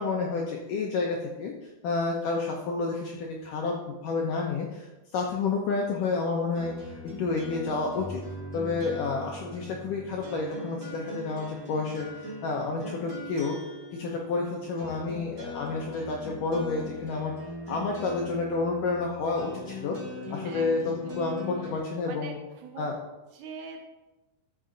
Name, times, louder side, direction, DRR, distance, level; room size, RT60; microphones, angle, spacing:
voice 1, 0.0-1.5 1.8-8.2 8.5-13.6 13.9-17.3 17.7-20.0 20.3-22.4 22.8-22.9, left 4 dB, 75° left, 0 dB, 1.9 m, -30 dB
sound 1, 6.5-21.8, left 2 dB, 30° right, 1.9 m, -41 dB
voice 2, 14.7-15.2 20.3-20.7 21.0-22.9 23.3-23.9, right 5 dB, 75° right, 4 dB, 3.0 m, -45 dB
13.5 x 6.1 x 3.9 m, 1.1 s
omnidirectional pair, 4.9 m